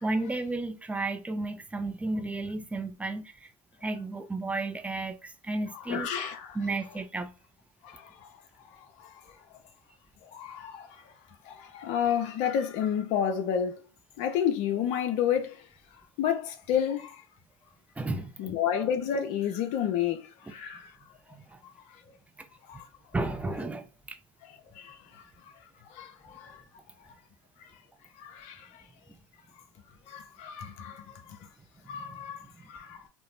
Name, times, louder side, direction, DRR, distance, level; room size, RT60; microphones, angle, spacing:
voice 1, 0.0-3.5 3.8-6.1 6.5-7.3 18.0-18.3 21.3-21.6 23.1-24.2 31.8-32.2, right 2 dB, 10° right, 0.4 m, -33 dB
voice 2, 5.7-6.6 7.8-8.3 9.0-9.1 10.3-11.0 11.4-13.8 14.2-15.6 16.2-17.2 18.4-20.9 22.7-22.9 24.7-25.2 25.9-26.6 28.2-28.8 30.1-31.4 31.9-33.0, left 9 dB, 50° left, 0.6 m, -31 dB
2.5 x 2.0 x 3.1 m
hypercardioid pair, 90°, 15 cm